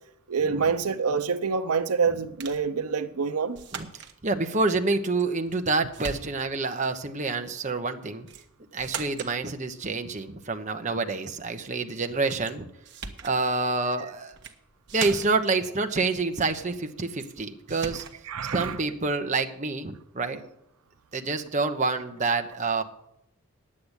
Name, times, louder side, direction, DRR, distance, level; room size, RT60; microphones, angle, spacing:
voice 1, 0.3-3.6 18.3-18.8, right 5 dB, 90° right, 0.7 m, -26 dB
sound 1, 2.4-2.7 3.5-4.2 5.2-5.7 5.9-6.6 8.3-8.5 8.8-9.4 12.4-12.5 12.8-13.4 14.3-14.6 14.9-15.5 17.2-17.4 17.7-18.2, right 5 dB, 55° right, 1.1 m, -39 dB
voice 2, 4.2-8.3 8.7-12.7 13.2-14.4 14.9-18.0 18.5-20.4 21.1-22.8, right 3 dB, 35° right, 0.9 m, -27 dB
10.5 x 8.6 x 8.1 m
head